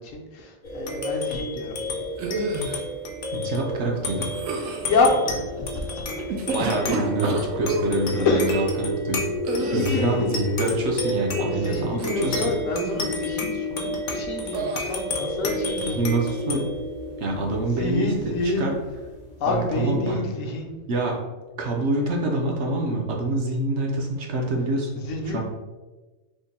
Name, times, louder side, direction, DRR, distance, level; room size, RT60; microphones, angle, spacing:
voice 1, 0.0-2.0 4.6-6.1 8.1-8.7 9.5-10.3 11.4-16.4 17.6-18.8 19.4-20.7 25.0-25.4, left 3 dB, 75° left, 1 dB, 1.0 m, -27 dB
sound 1, 0.6-19.5, left 1 dB, 50° left, 0.6 m, -30 dB
sound 2, 2.2-2.8 4.3-4.9 6.2-7.9 9.4-10.2 11.9-12.4 12.7-13.1 14.5-15.0, right 2 dB, 85° right, 1.0 m, -29 dB
voice 2, 3.3-4.3 6.5-9.3 9.7-12.4 15.8-16.7 17.2-18.1 18.6-18.7 19.5-20.2 20.9-21.2 21.6-25.0 25.3-25.4, right 2 dB, 60° right, 0 dB, 0.9 m, -26 dB
3.6 x 2.1 x 4.0 m, 1.2 s
omnidirectional pair, 1.4 m